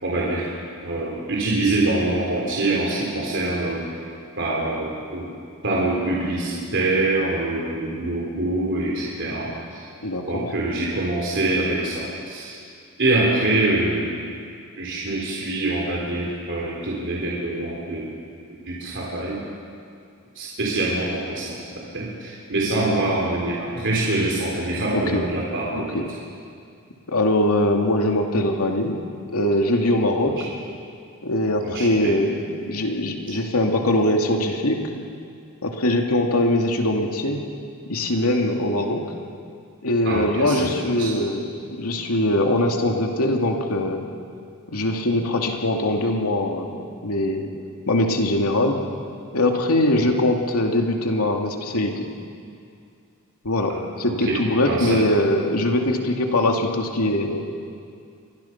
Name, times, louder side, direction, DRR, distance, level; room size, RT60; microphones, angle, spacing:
voice 1, 0.0-0.5 0.8-3.9 4.4-5.3 5.6-9.9 10.3-12.6 13.0-14.1 14.8-18.1 18.5-19.4 20.4-26.1 31.6-32.2 40.0-40.7 41.0-41.1 50.0-50.1 53.7-55.0, right 2 dB, 55° right, -4 dB, 3.7 m, -25 dB
voice 2, 10.0-10.5 22.7-23.0 24.9-25.2 25.7-26.0 27.1-29.0 29.3-30.5 31.2-34.8 35.6-37.4 37.9-39.0 39.8-44.1 44.7-47.5 47.9-48.8 49.3-52.1 53.4-57.4, left 1 dB, 80° left, 2 dB, 2.6 m, -22 dB
28.5 x 23.0 x 6.0 m, 2.4 s
head